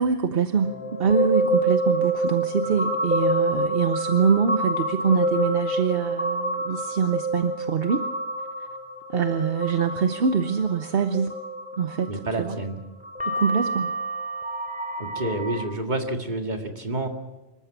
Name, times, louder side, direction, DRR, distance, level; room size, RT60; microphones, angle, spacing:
voice 1, 0.0-8.1 9.1-11.3 11.8-12.1 12.4-12.6 13.3-13.9, right 6 dB, 70° right, 9 dB, 1.1 m, -24 dB
sound 1, 0.6-12.4 13.0-15.6, right 1 dB, 10° right, 2.9 m, -27 dB
voice 2, 12.1-12.8 15.0-17.1, right 2 dB, 45° right, 4 dB, 2.2 m, -29 dB
25.5 x 14.0 x 8.2 m, 1.2 s
omnidirectional pair, 1.1 m